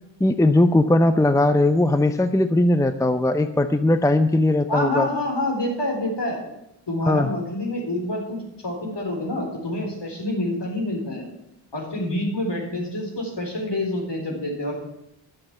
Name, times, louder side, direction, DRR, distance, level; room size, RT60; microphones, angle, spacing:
voice 1, 0.2-5.1 7.1-7.3, left 1 dB, 5° left, 10 dB, 0.6 m, -19 dB
voice 2, 4.7-6.4 6.9-11.2 11.7-14.8, left 1 dB, 55° left, 0 dB, 4.1 m, -27 dB
11.0 x 7.7 x 7.1 m, 0.85 s
cardioid pair, 50°, 49 cm